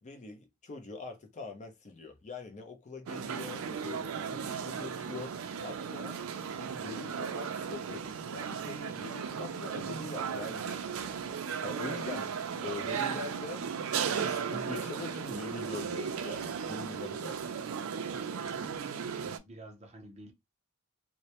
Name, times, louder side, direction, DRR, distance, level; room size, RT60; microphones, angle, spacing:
voice 1, 0.0-6.2 6.6-11.3 11.6-13.7 14.0-17.4, left 3 dB, 35° left, 0.5 m, -44 dB
sound 1, 3.1-19.4, right 6 dB, 75° right, 0.4 m, -36 dB
voice 2, 18.1-20.3, right 2 dB, 30° right, 0.6 m, -49 dB
2.1 x 2.1 x 2.8 m
head